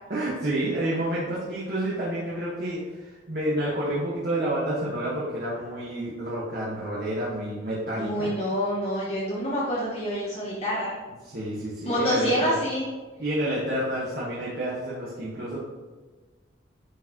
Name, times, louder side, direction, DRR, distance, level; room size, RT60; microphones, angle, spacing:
voice 1, 0.1-8.3 11.2-12.6 13.2-15.6, right 1 dB, 50° right, -7 dB, 1.5 m, -29 dB
voice 2, 8.0-10.9 11.8-12.9, equal, 35° left, -6 dB, 1.1 m, -27 dB
10.0 x 4.7 x 3.0 m, 1.3 s
head